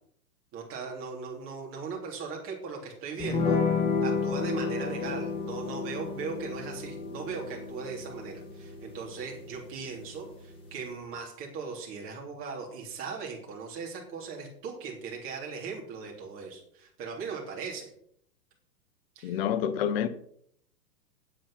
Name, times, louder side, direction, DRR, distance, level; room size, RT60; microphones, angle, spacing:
voice 1, 0.5-3.6 4.0-17.9 19.1-19.4, right 5 dB, 25° right, 3.5 m, -38 dB
sound 1, 3.2-11.0, left 4 dB, 10° left, 2.1 m, -32 dB
voice 2, 19.2-20.1, left 9 dB, 40° left, 1.0 m, -28 dB
9.0 x 8.3 x 5.7 m
hypercardioid pair, 150°, 48 cm